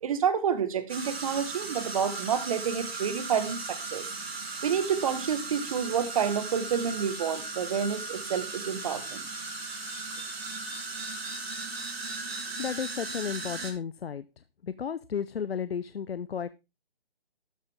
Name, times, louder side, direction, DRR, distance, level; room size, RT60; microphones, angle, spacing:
voice 1, 0.0-4.0 4.6-9.2, right 7 dB, 35° right, 1.6 m, -29 dB
sound 1, 0.9-13.7, right 3 dB, 80° right, 4.0 m, -37 dB
voice 2, 12.6-14.2 14.6-16.5, left 7 dB, 75° left, 0.7 m, -33 dB
13.0 x 9.1 x 3.7 m
hypercardioid pair, 160°, 30 cm